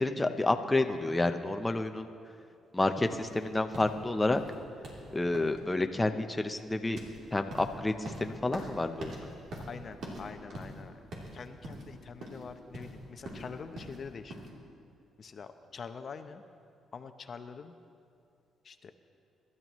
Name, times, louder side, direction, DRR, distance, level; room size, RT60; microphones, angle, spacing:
voice 1, 0.0-2.1 2.7-4.4 5.1-7.0 7.3-9.2, left 2 dB, 15° left, 6 dB, 0.7 m, -29 dB
sound 1, 3.1-14.5, right 1 dB, 70° right, 3.2 m, -44 dB
voice 2, 9.7-10.9 11.3-14.4 15.2-16.4 16.9-17.7 18.6-18.9, left 5 dB, 50° left, 8 dB, 0.7 m, -45 dB
24.5 x 12.5 x 3.1 m, 2.5 s
cardioid pair, 90°, 0 cm